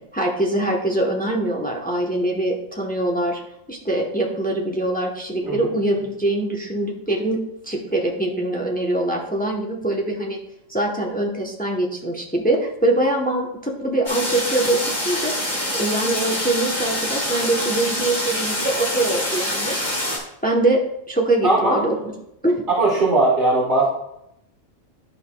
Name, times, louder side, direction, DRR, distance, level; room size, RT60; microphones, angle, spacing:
voice 1, 0.1-3.4 3.7-7.4 7.7-10.4 10.7-15.5 15.7-19.8 20.4-20.8 21.1-22.1 22.4-22.6, right 2 dB, 10° left, 0 dB, 0.7 m, -23 dB
sound 1, 14.1-20.2, left 1 dB, 35° left, 1.9 m, -25 dB
voice 2, 21.4-21.8 22.8-23.8, right 2 dB, 60° right, -6 dB, 1.7 m, -18 dB
11.5 x 5.6 x 2.2 m, 0.80 s
omnidirectional pair, 1.4 m